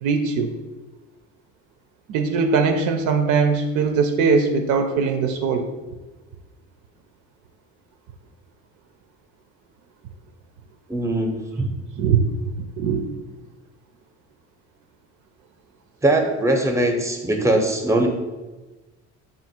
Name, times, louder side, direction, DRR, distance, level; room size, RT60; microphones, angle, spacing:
voice 1, 0.0-0.5 2.1-5.7 12.0-12.2 12.8-13.0, right 5 dB, 60° right, 6 dB, 0.5 m, -20 dB
voice 2, 10.9-11.7 16.0-18.1, right 1 dB, 10° right, 4 dB, 0.6 m, -21 dB
3.8 x 2.5 x 4.2 m, 1.2 s
supercardioid pair, 80°, 34 cm